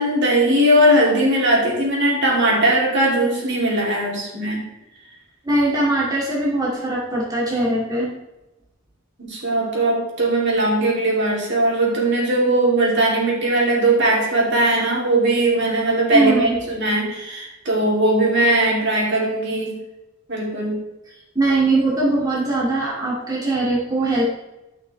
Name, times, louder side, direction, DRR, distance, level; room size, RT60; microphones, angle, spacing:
voice 1, 0.0-4.6 9.2-19.7 20.3-20.8, right 1 dB, 55° right, -3 dB, 3.0 m, -19 dB
voice 2, 5.4-8.1 16.1-16.6 21.3-24.2, right 2 dB, 20° right, -6 dB, 2.2 m, -21 dB
13.5 x 5.8 x 3.3 m, 0.97 s
head